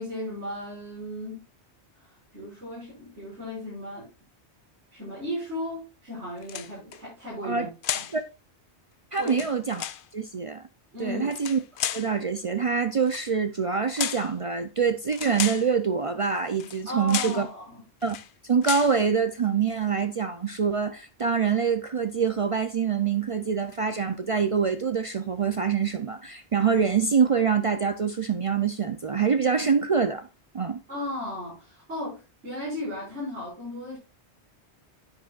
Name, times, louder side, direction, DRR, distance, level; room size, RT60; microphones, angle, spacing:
voice 1, 0.0-1.4 2.0-4.1 4.9-8.1 9.2-9.4 10.9-11.3 16.8-17.8 30.9-34.0, left 1 dB, 85° right, 6.0 m, -35 dB
sound 1, 6.4-7.0 7.8-8.2 9.2-10.0 11.3-12.1 13.0-13.3 14.0-14.3 15.1-15.7 16.6-16.8 17.1-17.4 18.0-18.3 18.6-19.0, left 10 dB, 60° left, 0.7 m, -32 dB
voice 2, 9.1-9.8 10.1-10.6 11.0-11.6 11.9-17.5 18.0-18.2 18.4-30.3 30.5-30.8, right 6 dB, 50° right, 0.4 m, -25 dB
10.5 x 8.8 x 2.4 m
omnidirectional pair, 1.1 m